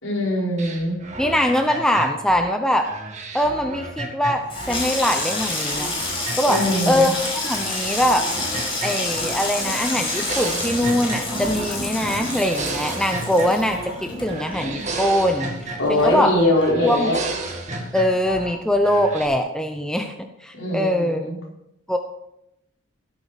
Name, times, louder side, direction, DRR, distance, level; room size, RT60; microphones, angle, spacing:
voice 1, 0.0-1.0 6.5-7.1 15.8-17.2 20.5-21.3, left 1 dB, 60° left, -3 dB, 5.0 m, -22 dB
sound 1, 0.6-4.8 5.1-7.1 7.4-9.4 9.7-11.7 12.0-14.0 14.3-16.3 16.6-18.5 18.8-19.2, right 2 dB, 35° right, 1.8 m, -33 dB
voice 2, 1.2-2.9 3.3-5.9 6.4-6.6 6.9-7.1 7.4-8.3 8.8-16.3 16.8-17.1 17.9-20.1 20.4-21.3 21.9-22.0, equal, 5° left, 4 dB, 0.7 m, -22 dB
Water tap faucet / Sink (filling or washing), 4.3-17.2 17.5-18.1 18.4-18.7, left 2 dB, 25° left, 5.6 m, -29 dB
16.0 x 8.6 x 5.1 m, 0.84 s
head